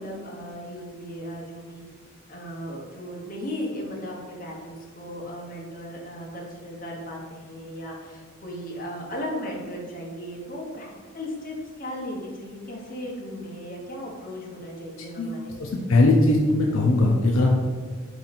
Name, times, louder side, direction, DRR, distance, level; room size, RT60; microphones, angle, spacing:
voice 1, 0.0-1.8 2.3-15.5, equal, 40° left, -2 dB, 0.9 m, -36 dB
voice 2, 15.6-17.6, left 2 dB, 70° left, 0 dB, 0.4 m, -20 dB
4.3 x 3.0 x 4.0 m, 1.5 s
head